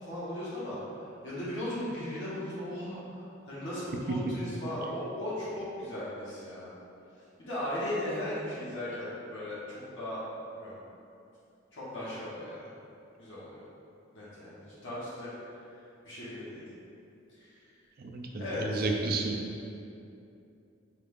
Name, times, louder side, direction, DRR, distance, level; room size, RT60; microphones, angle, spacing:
voice 1, 0.0-6.7 7.4-10.3 10.5-10.7 11.7-12.7 13.2-13.6 14.1-15.3 16.0-16.6 17.4-17.5 18.4-18.9, left 1 dB, 70° left, -10 dB, 1.2 m, -37 dB
voice 2, 18.0-19.4, right 3 dB, 50° right, 2 dB, 0.4 m, -32 dB
4.8 x 2.4 x 3.5 m, 2.7 s
head